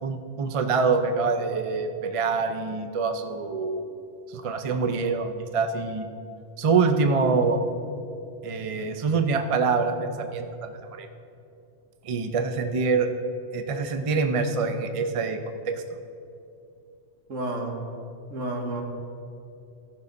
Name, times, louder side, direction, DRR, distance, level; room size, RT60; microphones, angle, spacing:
voice 1, 0.0-3.8 4.3-6.1 6.6-7.6 8.4-11.1 12.0-13.1 13.5-15.4 15.7-15.8, right 4 dB, 40° right, 7 dB, 0.5 m, -25 dB
voice 2, 17.3-17.8 18.3-18.8, right 2 dB, 80° right, 2 dB, 1.7 m, -30 dB
15.0 x 5.5 x 5.3 m, 2.6 s
omnidirectional pair, 1.3 m